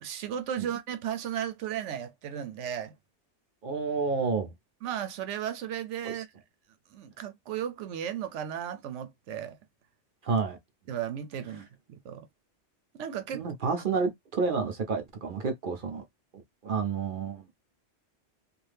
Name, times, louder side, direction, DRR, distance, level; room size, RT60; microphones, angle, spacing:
voice 1, 0.0-2.9 4.8-6.3 6.9-9.6 10.9-12.3 12.9-13.4, right 9 dB, 85° right, 0.9 m, -35 dB
voice 2, 3.6-4.5 6.0-6.2 10.2-10.6 13.3-16.0 16.3-17.5, right 4 dB, 55° right, 0.7 m, -30 dB
2.7 x 2.5 x 3.3 m
omnidirectional pair, 1.2 m